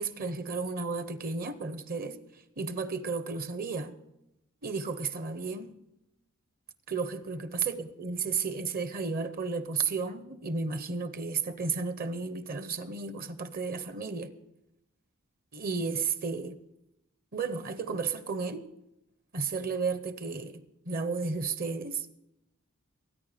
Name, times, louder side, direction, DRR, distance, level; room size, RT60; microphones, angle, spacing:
voice 1, 0.0-2.2 2.6-3.9 4.6-5.7 6.9-14.3 15.5-16.6 17.3-18.6 19.3-22.1, right 4 dB, 45° right, 0.8 m, -33 dB
20.5 x 9.5 x 5.0 m
head